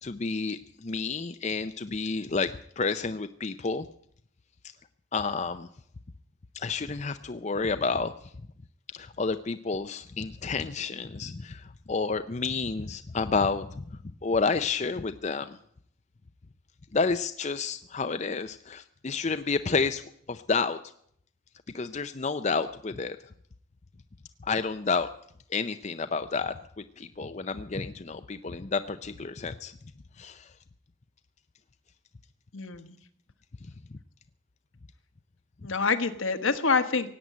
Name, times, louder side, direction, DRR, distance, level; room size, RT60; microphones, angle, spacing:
voice 1, 0.0-3.9 5.1-5.7 6.5-8.1 8.9-13.8 14.2-15.6 16.9-20.8 21.7-23.2 24.4-25.1 25.5-26.6 27.0-29.7 30.2-30.5, left 4 dB, 35° left, 10 dB, 0.5 m, -30 dB
voice 2, 32.5-33.0 35.6-37.1, left 4 dB, 75° left, 9 dB, 1.3 m, -26 dB
17.5 x 8.9 x 9.3 m, 0.67 s
head